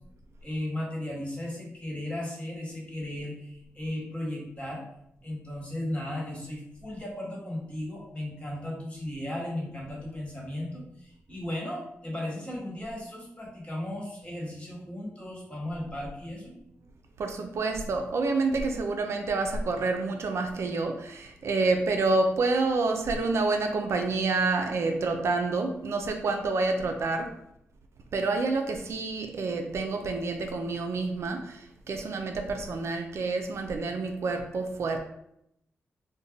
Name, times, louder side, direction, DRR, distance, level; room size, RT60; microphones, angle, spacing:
voice 1, 0.4-4.8 5.2-16.5, left 1 dB, 25° left, -4 dB, 1.4 m, -36 dB
voice 2, 17.2-27.3 28.1-35.0, right 3 dB, 65° right, 4 dB, 0.4 m, -28 dB
2.6 x 2.1 x 3.8 m, 0.77 s
cardioid pair, 60°, 5 cm